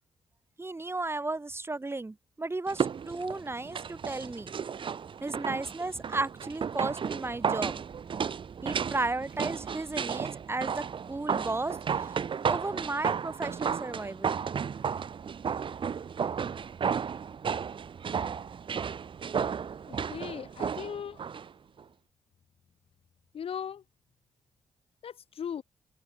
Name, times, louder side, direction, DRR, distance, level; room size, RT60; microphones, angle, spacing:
voice 1, 0.6-4.5 5.2-7.8 8.6-12.1 12.5-14.4, right 2 dB, 25° right, 1.9 m, -34 dB
sound 1, 2.7-21.5 21.8-21.9, right 7 dB, 55° right, 1.3 m, -33 dB
voice 2, 19.9-21.2 23.3-23.8 25.0-25.6, left 8 dB, 65° left, 7.6 m, -38 dB
open air
supercardioid pair, 55°, 10 cm